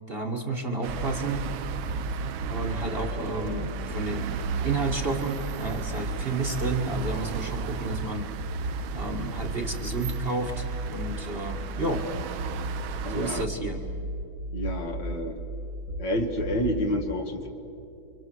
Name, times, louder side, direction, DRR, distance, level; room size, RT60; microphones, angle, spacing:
voice 1, 0.1-1.5 2.5-8.3 8.9-12.1 13.1-13.9, right 2 dB, 30° right, 2 dB, 1.8 m, -31 dB
sound 1, 0.8-13.5, right 10 dB, 85° right, 1.6 m, -36 dB
sound 2, 1.4-16.9, equal, 50° right, 1.7 m, -35 dB
voice 2, 13.0-13.4 14.5-15.4 16.0-17.5, equal, 60° left, 4 dB, 2.5 m, -29 dB
29.0 x 25.0 x 7.8 m, 2.8 s
omnidirectional pair, 2.1 m